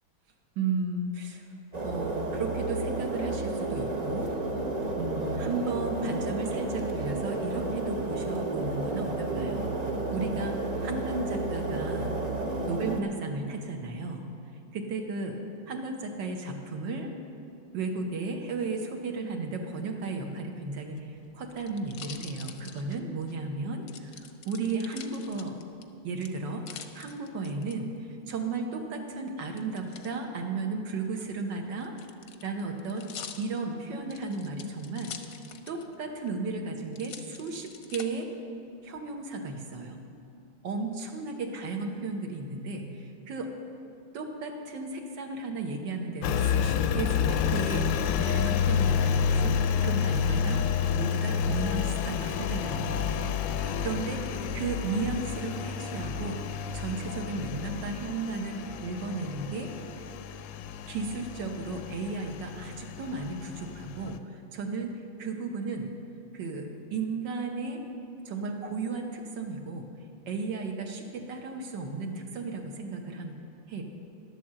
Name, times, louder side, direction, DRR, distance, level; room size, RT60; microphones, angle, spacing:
voice 1, 0.6-1.4 1.8-4.3 5.0-9.8 10.1-10.6 10.8-12.1 12.7-14.2 14.7-15.4 15.7-17.1 17.7-25.6 26.0-27.9 28.3-31.9 32.4-33.0 33.4-35.1 35.7-38.3 38.8-40.0 40.6-43.5 44.1-47.9 48.2-50.6 50.9-53.3 53.8-56.4 56.7-59.7 60.9-64.9 65.2-65.9 66.3-67.8 68.3-69.9 70.3-73.3 73.7-73.8, right 3 dB, 70° right, 3 dB, 1.7 m, -34 dB
sound 1, 1.7-13.0, right 2 dB, 50° right, 0.5 m, -31 dB
sound 2, 20.8-23.3 23.9-25.8 26.2-27.7 29.6-30.1 31.0-35.9 36.3-36.4 36.9-38.1 38.7-39.2, left 8 dB, 60° left, 1.0 m, -45 dB
Engine, 46.2-64.2, left 7 dB, 80° left, 1.3 m, -29 dB
11.0 x 7.6 x 7.5 m, 2.5 s
omnidirectional pair, 2.1 m